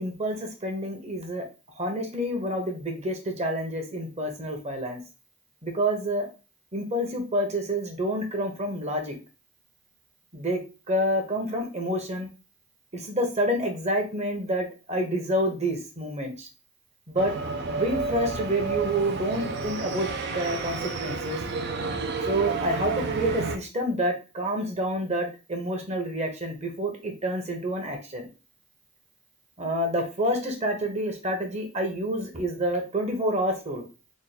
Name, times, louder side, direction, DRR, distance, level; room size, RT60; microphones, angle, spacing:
voice 1, 0.0-1.4 1.7-5.0 5.6-6.3 6.7-9.2 10.3-10.6 10.9-12.3 12.9-16.5 17.1-17.3 17.6-21.4 22.3-28.3 29.6-33.9, equal, 35° right, 3 dB, 1.0 m, -28 dB
sound 1, 17.2-23.6, right 4 dB, 55° right, 0.5 m, -30 dB
3.6 x 2.3 x 4.2 m, 0.30 s
head